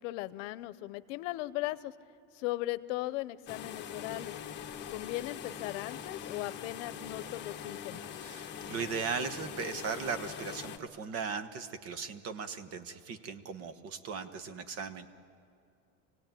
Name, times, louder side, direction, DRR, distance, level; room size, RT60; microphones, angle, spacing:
voice 1, 0.0-1.9 2.3-4.4 4.9-8.0, left 18 dB, 85° left, 15 dB, 0.8 m, -37 dB
sound 1, 3.5-10.8, left 8 dB, 30° left, 1.5 m, -43 dB
voice 2, 8.1-15.1, right 5 dB, 40° right, 11 dB, 1.2 m, -38 dB
26.0 x 17.5 x 9.1 m, 2.4 s
cardioid pair, 155°, 37 cm